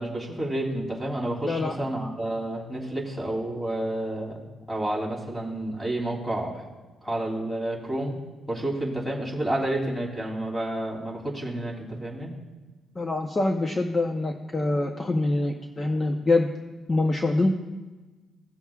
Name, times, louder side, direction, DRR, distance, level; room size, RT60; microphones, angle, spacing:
voice 1, 0.0-4.4 4.7-6.7 7.0-8.2 8.5-12.3, right 1 dB, ahead, -2 dB, 2.9 m, -30 dB
voice 2, 1.4-1.8 13.0-16.5 16.9-17.5, left 2 dB, 25° left, 3 dB, 0.8 m, -25 dB
17.5 x 7.2 x 2.4 m, 1.2 s
cardioid pair, 90°, 0 cm